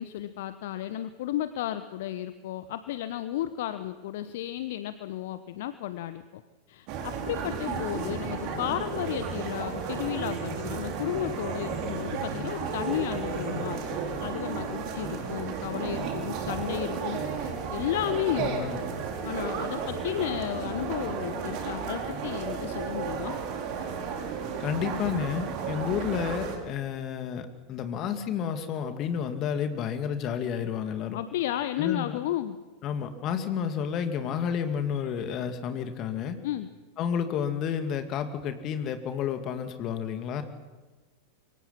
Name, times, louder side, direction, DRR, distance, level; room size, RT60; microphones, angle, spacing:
voice 1, 0.0-6.4 6.7-13.8 14.2-18.5 19.2-23.3 31.1-32.6 36.4-36.7, left 12 dB, 55° left, 12 dB, 0.9 m, -33 dB
sound 1, 6.9-26.6, right 5 dB, 40° right, 4.1 m, -33 dB
voice 2, 18.4-18.8 24.6-31.2 31.8-32.2 32.8-36.4 37.0-40.4, left 8 dB, 35° left, 8 dB, 2.4 m, -31 dB
27.0 x 23.5 x 5.9 m, 1.2 s
figure-of-eight pair, 90°, 0 cm